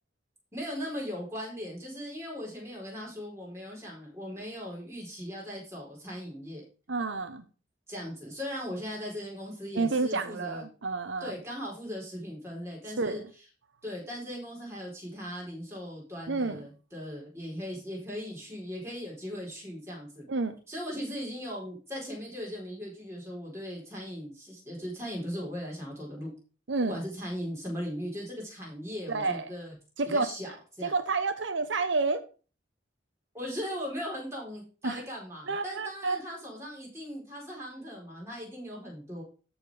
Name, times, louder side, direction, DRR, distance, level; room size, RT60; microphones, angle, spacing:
voice 1, 0.5-6.6 7.9-10.6 11.2-13.2 13.8-20.2 20.7-26.3 26.8-29.7 30.1-30.9 33.3-39.2, equal, 15° right, -3 dB, 4.7 m, -38 dB
voice 2, 6.9-7.4 9.7-11.3 13.0-13.2 16.3-16.6 20.3-20.5 26.7-27.0 29.1-29.5 30.0-30.3 30.8-32.2 34.8-35.0 35.5-36.2, right 3 dB, 80° right, 9 dB, 0.9 m, -29 dB
13.5 x 4.5 x 4.9 m, 0.36 s
head